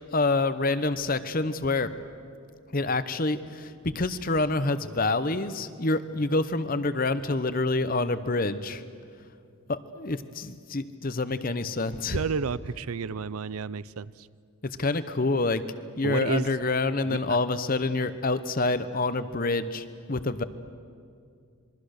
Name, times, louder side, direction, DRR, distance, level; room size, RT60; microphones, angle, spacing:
voice 1, 0.1-1.9 2.7-8.8 9.7-12.2 14.6-15.6 16.0-20.4, left 3 dB, 40° left, 12 dB, 0.9 m, -27 dB
voice 2, 12.1-14.3 16.0-16.5 17.0-17.2, right 5 dB, 85° right, 19 dB, 0.5 m, -31 dB
27.0 x 22.5 x 6.6 m, 2.3 s
head